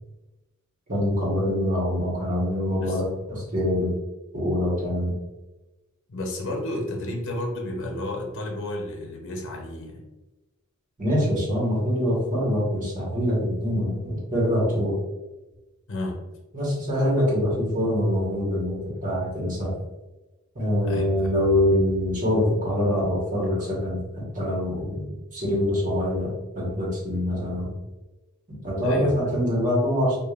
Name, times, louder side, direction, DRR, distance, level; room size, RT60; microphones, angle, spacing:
voice 1, 0.9-3.9 4.3-5.1 11.0-15.0 16.5-19.7 20.5-24.0 24.3-26.3 26.5-27.7 28.6-30.2, left 1 dB, 35° right, -5 dB, 1.4 m, -24 dB
voice 2, 6.1-10.0 15.9-16.2 20.8-21.4 28.8-29.4, left 1 dB, 60° left, 1 dB, 0.8 m, -32 dB
4.8 x 2.5 x 2.4 m, 1.1 s
head